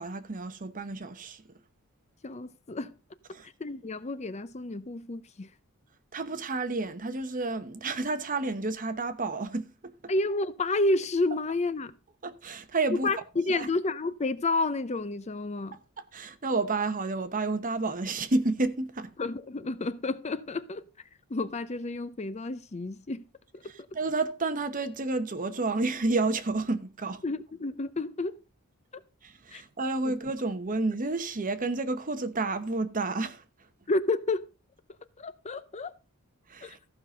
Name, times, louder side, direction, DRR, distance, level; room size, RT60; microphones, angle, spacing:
voice 1, 0.0-1.4 3.3-3.5 6.1-10.1 12.2-13.1 13.5-13.7 16.0-19.1 23.6-27.2 29.2-33.4 36.5-36.8, right 3 dB, 35° right, 1.0 m, -30 dB
voice 2, 2.2-2.9 3.6-5.5 10.1-11.9 12.9-15.8 19.2-20.9 21.3-23.2 23.5-23.9 27.2-28.4 29.5-29.6 30.0-30.1 33.9-34.5 35.2-35.9 36.6-36.8, left 2 dB, 30° left, 0.6 m, -30 dB
14.5 x 5.9 x 5.1 m
head